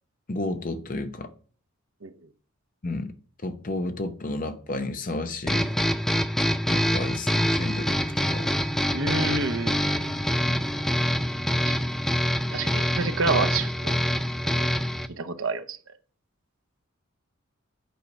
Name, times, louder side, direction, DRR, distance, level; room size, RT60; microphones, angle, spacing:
voice 1, 0.3-1.3 2.8-3.1 3.4-5.7 6.7-8.5 10.5-10.6, left 2 dB, 40° left, 0.8 m, -32 dB
sound 1, 5.5-15.1, equal, ahead, 0.4 m, -25 dB
voice 2, 8.9-10.1 11.6-11.7 12.5-14.0 14.6-14.7 15.2-15.8, right 4 dB, 70° right, 0.9 m, -29 dB
8.4 x 4.6 x 5.4 m
head